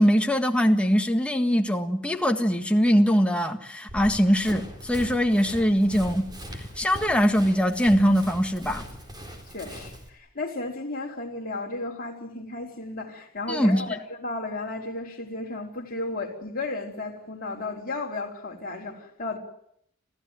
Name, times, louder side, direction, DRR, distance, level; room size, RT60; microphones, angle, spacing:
voice 1, 0.0-6.3 6.8-8.8 13.5-13.8, equal, 5° left, 1.7 m, -22 dB
Run, 3.9-10.1, equal, 20° right, 4.0 m, -40 dB
voice 2, 9.5-19.4, left 2 dB, 45° left, 4.8 m, -34 dB
28.0 x 15.0 x 9.5 m
head